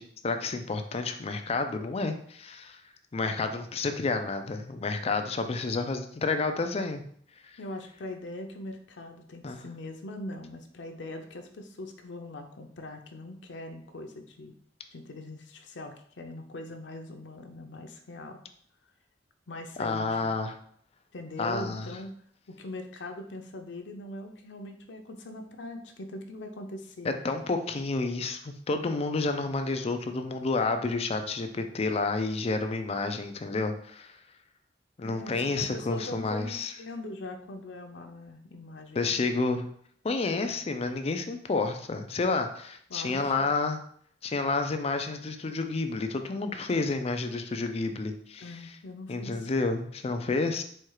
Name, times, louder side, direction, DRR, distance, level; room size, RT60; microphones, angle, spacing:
voice 1, 0.0-2.8 3.1-7.0 9.4-9.6 19.8-20.6 21.4-21.9 27.0-34.1 35.0-36.7 38.9-39.7 40.0-43.8 44.2-48.5 49.1-50.6, left 3 dB, 35° left, 7 dB, 0.4 m, -30 dB
voice 2, 7.6-14.5 14.9-18.4 19.5-20.3 21.1-22.1 22.5-27.1 35.0-39.3 42.9-43.3 48.4-49.5, left 1 dB, 85° left, 5 dB, 0.6 m, -41 dB
4.4 x 2.4 x 4.7 m, 0.62 s
head